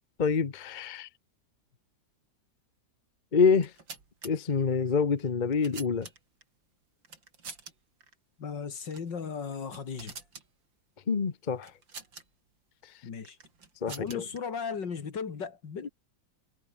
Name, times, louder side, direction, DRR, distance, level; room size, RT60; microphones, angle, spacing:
voice 1, 0.2-1.1 3.3-3.7 4.2-6.1 11.1-11.7 12.8-12.9 13.8-14.2, left 5 dB, 30° left, 1.0 m, -26 dB
sound 1, 3.5-4.3 5.2-6.4 7.0-7.7 8.0-8.1 8.8-9.1 9.5-10.5 11.6-12.2 13.2-14.4, right 4 dB, 85° right, 4.1 m, -46 dB
voice 2, 8.4-10.2 13.0-13.4 13.9-15.9, left 6 dB, 70° left, 2.9 m, -36 dB
omnidirectional pair, 2.0 m